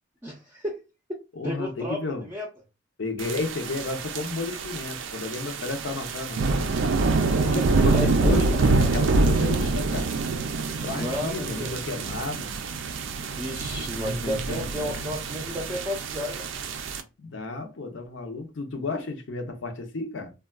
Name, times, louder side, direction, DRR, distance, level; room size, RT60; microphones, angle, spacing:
voice 1, 0.2-0.8 1.4-2.5 7.5-7.7 7.9-8.6 10.9-11.8 13.3-16.5, left 1 dB, 15° right, 0.5 m, -33 dB
voice 2, 1.3-2.3 3.0-6.7 7.4-10.1 10.8-12.5 14.0-15.1 17.2-20.3, left 3 dB, 70° left, 0.6 m, -32 dB
sound 1, 3.2-17.0, right 3 dB, 75° right, 0.4 m, -26 dB
3.5 x 2.2 x 2.2 m
head